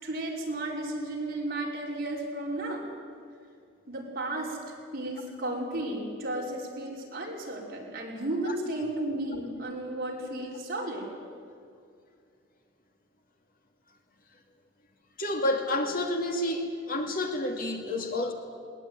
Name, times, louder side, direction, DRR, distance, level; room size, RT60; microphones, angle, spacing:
voice 1, 0.0-2.9 3.9-11.1, right 1 dB, 50° right, -3 dB, 5.4 m, -34 dB
voice 2, 15.2-18.3, left 1 dB, 50° left, 3 dB, 2.6 m, -29 dB
21.0 x 20.0 x 9.6 m, 2.3 s
head